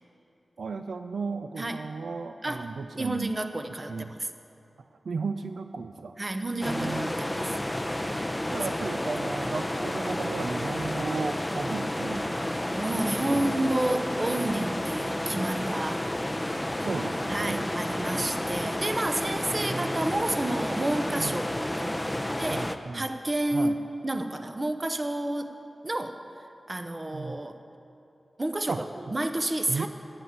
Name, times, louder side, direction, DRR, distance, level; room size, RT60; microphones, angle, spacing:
voice 1, 0.6-3.3 3.9-4.2 5.0-6.2 6.6-7.1 8.5-12.6 13.2-13.5 16.8-17.7 19.5-20.1 21.2-21.4 22.5-23.1 23.5-23.7 27.1-27.4 28.7-28.8 29.7-29.9, right 4 dB, 80° right, 8 dB, 0.4 m, -34 dB
voice 2, 1.6-1.9 2.4-2.7 3.0-4.3 6.2-7.6 12.7-16.1 17.3-23.7 24.0-25.5 25.8-26.2 26.7-27.6 28.4-29.9, right 1 dB, 35° right, 7 dB, 0.7 m, -30 dB
sound 1, 6.6-22.8, left 1 dB, 15° left, 0.5 m, -31 dB
11.0 x 7.7 x 8.1 m, 2.8 s
wide cardioid pair, 90°, 0 cm